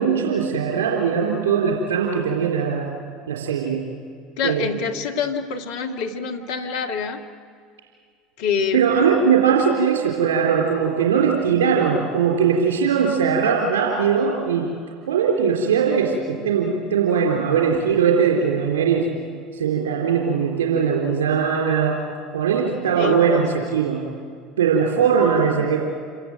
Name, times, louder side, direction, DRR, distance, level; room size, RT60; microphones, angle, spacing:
voice 1, 0.0-2.9 3.3-3.8 4.4-4.8 8.7-14.7 15.1-19.1 19.5-22.0 22.3-24.1 24.6-25.8, right 6 dB, 70° right, -1 dB, 3.6 m, -20 dB
voice 2, 4.4-7.2 8.4-9.1 23.0-23.7, left 6 dB, 65° left, 3 dB, 1.7 m, -26 dB
28.0 x 17.0 x 7.9 m, 2.1 s
figure-of-eight pair, 70°, 0 cm